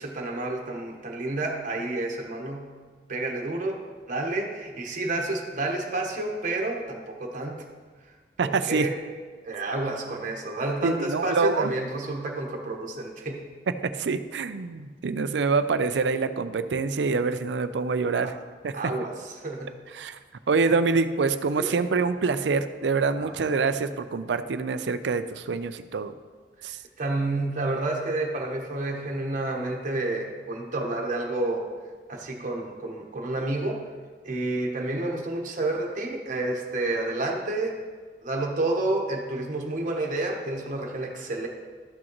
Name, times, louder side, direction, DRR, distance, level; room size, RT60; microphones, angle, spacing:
voice 1, 0.0-2.7 3.1-7.6 8.1-8.2 8.4-8.9 9.4-13.4 18.7-19.8 21.6-21.8 23.2-23.3 26.6-31.7 32.1-33.8 34.2-37.8 38.2-41.5, right 2 dB, 45° right, 1 dB, 1.1 m, -30 dB
voice 2, 8.4-8.9 10.8-11.7 13.9-18.4 18.6-18.9 19.9-20.2 20.5-26.1 26.6-26.8, right 4 dB, 75° right, 11 dB, 0.5 m, -26 dB
13.0 x 6.3 x 3.0 m, 1.5 s
head